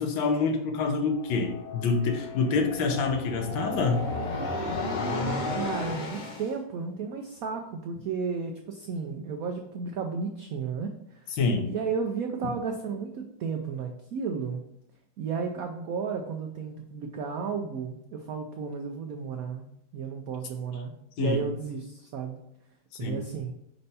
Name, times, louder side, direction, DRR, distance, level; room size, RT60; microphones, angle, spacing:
voice 1, 0.0-4.1 11.3-11.7 21.2-21.4 23.0-23.2, left 4 dB, 80° left, 4 dB, 1.6 m, -26 dB
sound 1, 1.1-6.5, left 2 dB, 55° left, 0.5 m, -33 dB
voice 2, 5.6-11.4 11.6-14.6 15.2-22.4 23.0-23.5, right 5 dB, 90° right, 4 dB, 0.7 m, -33 dB
5.3 x 4.4 x 4.1 m, 0.81 s
omnidirectional pair, 2.1 m